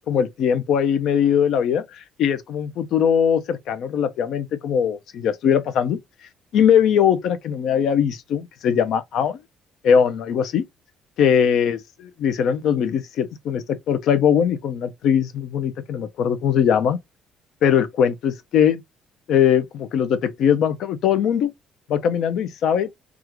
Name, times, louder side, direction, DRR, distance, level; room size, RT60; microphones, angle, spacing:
voice 1, 0.1-6.0 6.5-9.4 9.8-10.7 11.2-11.8 12.2-17.0 17.6-18.8 19.3-21.5 21.9-22.9, left 8 dB, 65° left, 0.5 m, -20 dB
3.6 x 2.4 x 2.9 m
cardioid pair, 130°, 0 cm